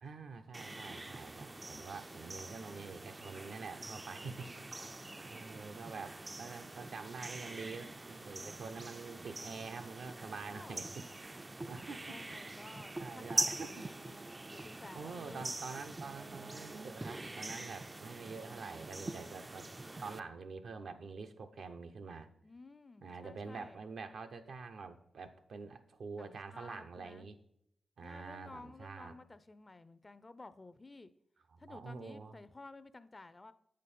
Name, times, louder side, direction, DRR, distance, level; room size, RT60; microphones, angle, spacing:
voice 1, 0.0-4.5 4.8-4.9 5.3-11.0 11.6-12.2 12.6-12.7 13.0-13.9 14.9-19.7 20.0-22.3 23.0-27.4 28.0-29.2 31.5-32.4, right 4 dB, 75° right, 6 dB, 0.6 m, -46 dB
sound 1, 0.5-20.2, right 2 dB, 30° right, 0.3 m, -44 dB
voice 2, 4.9-5.7 10.2-10.9 12.1-14.2 14.5-15.5 22.4-23.8 26.2-27.3 28.0-31.1 31.6-33.5, left 3 dB, 35° left, 14 dB, 0.5 m, -54 dB
8.1 x 5.2 x 4.2 m, 0.76 s
cardioid pair, 50°, 0 cm